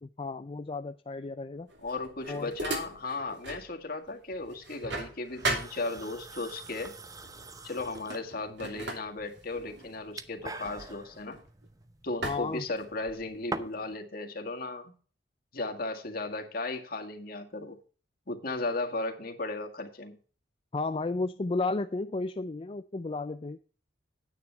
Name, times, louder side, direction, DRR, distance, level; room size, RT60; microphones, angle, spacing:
voice 1, 0.0-1.7 2.3-2.5 12.2-12.6 20.7-23.6, left 3 dB, 30° left, 0.4 m, -33 dB
sound 1, 1.7-3.7 4.1-6.4 7.2-7.5 7.8-11.7 12.2-13.4, right 2 dB, 70° right, 3.0 m, -38 dB
voice 2, 1.8-6.9 7.6-11.4 12.0-14.9 15.5-17.8 18.3-20.2, left 2 dB, 55° left, 1.9 m, -36 dB
sound 2, 5.4-14.0, right 3 dB, 20° right, 0.7 m, -45 dB
9.7 x 9.2 x 4.5 m
head